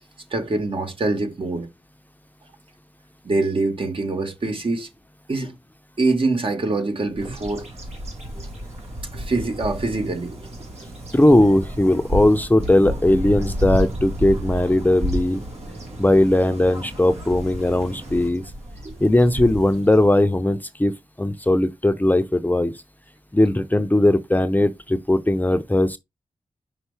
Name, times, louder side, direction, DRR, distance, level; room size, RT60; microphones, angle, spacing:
voice 1, 0.3-1.7 3.2-4.9 5.3-5.5 6.0-7.7 8.3-8.5 9.1-10.5 18.8-19.0, right 3 dB, 50° right, 1.5 m, -24 dB
Bird vocalization bird call bird song, 7.2-20.4, equal, 75° right, 2.3 m, -31 dB
voice 2, 11.1-15.4 16.0-18.4 19.0-20.9 21.2-22.7 23.3-26.0, left 1 dB, 15° left, 0.7 m, -18 dB
5.5 x 5.3 x 3.4 m
cardioid pair, 50°, 11 cm